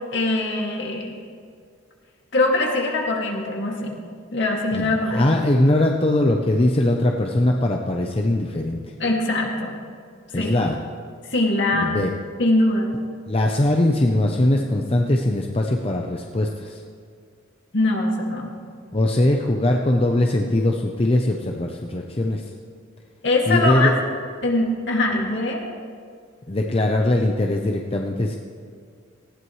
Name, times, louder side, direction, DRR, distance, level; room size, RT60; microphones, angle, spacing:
voice 1, 0.1-1.1 2.3-4.0 4.3-5.3 9.0-9.7 10.3-10.6 11.3-11.9 12.4-12.9 17.7-18.5 23.2-23.9 24.4-25.6, left 2 dB, 60° left, -1 dB, 2.2 m, -22 dB
voice 2, 4.7-8.8 10.3-10.8 11.7-12.1 13.3-16.8 18.9-22.4 23.5-23.9 26.5-28.4, left 1 dB, 30° left, 1 dB, 0.7 m, -21 dB
19.0 x 15.5 x 3.2 m, 2.2 s
head